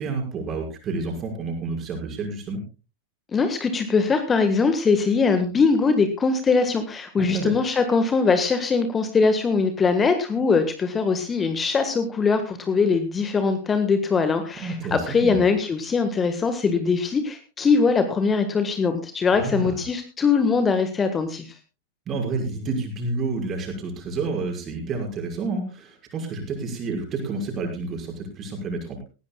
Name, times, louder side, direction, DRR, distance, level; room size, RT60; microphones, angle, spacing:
voice 1, 0.0-2.6 7.2-7.5 14.6-15.4 19.3-19.8 22.1-29.0, right 3 dB, 30° right, 2 dB, 5.9 m, -29 dB
voice 2, 3.3-21.6, left 4 dB, 20° left, 8 dB, 1.5 m, -22 dB
19.5 x 16.5 x 2.3 m, 0.32 s
figure-of-eight pair, 90°, 0 cm